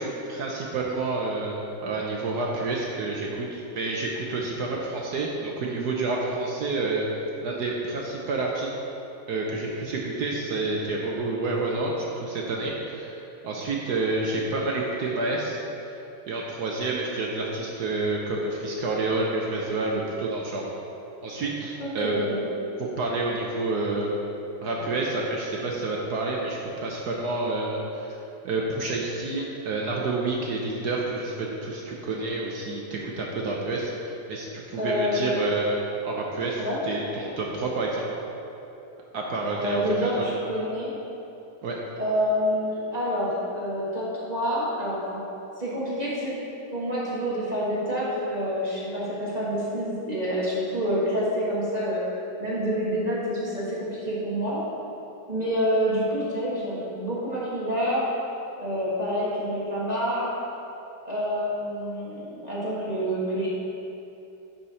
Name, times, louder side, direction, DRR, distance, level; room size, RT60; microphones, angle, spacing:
voice 1, 0.0-7.1 7.4-8.7 9.3-13.2 13.4-15.6 16.3-20.6 21.2-22.1 22.8-24.1 24.6-28.1 28.4-35.8 36.0-38.0 39.1-40.2 41.6-41.8, right 2 dB, 65° right, -2 dB, 1.1 m, -29 dB
voice 2, 21.8-22.4 34.8-35.5 36.6-36.8 39.5-40.9 42.0-45.2 45.6-46.4 46.7-52.1 52.4-54.6 55.3-58.1 58.6-60.3 61.0-63.5, equal, 25° right, -7 dB, 1.3 m, -27 dB
10.5 x 4.4 x 4.1 m, 3.0 s
omnidirectional pair, 2.2 m